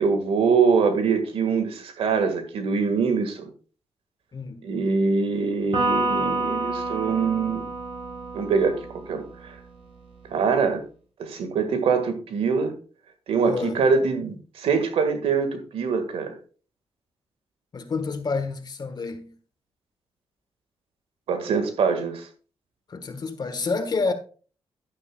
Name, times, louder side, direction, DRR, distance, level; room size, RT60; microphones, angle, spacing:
voice 1, 0.0-3.5 4.6-7.6 8.3-8.8 9.1-9.6 10.3-10.8 11.2-12.7 13.3-16.3 21.3-22.3, right 5 dB, 90° right, 1.8 m, -23 dB
voice 2, 4.3-4.7 13.4-13.8 17.7-19.3 22.9-24.1, left 4 dB, 45° left, 1.4 m, -29 dB
Electric guitar, 5.7-9.3, right 2 dB, 65° right, 4.8 m, -28 dB
11.0 x 9.8 x 2.3 m
cardioid pair, 85°, 10 cm